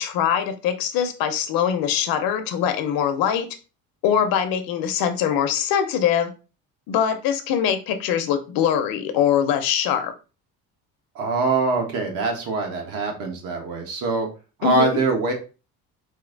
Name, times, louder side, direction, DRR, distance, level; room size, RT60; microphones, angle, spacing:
voice 1, 0.0-3.5 4.0-6.3 6.9-10.1 14.6-14.9, left 8 dB, 70° left, 8 dB, 0.8 m, -22 dB
voice 2, 11.1-14.3 14.6-15.3, right 3 dB, 65° right, 2 dB, 1.4 m, -23 dB
4.3 x 2.7 x 3.8 m, 0.32 s
cardioid pair, 170°, 36 cm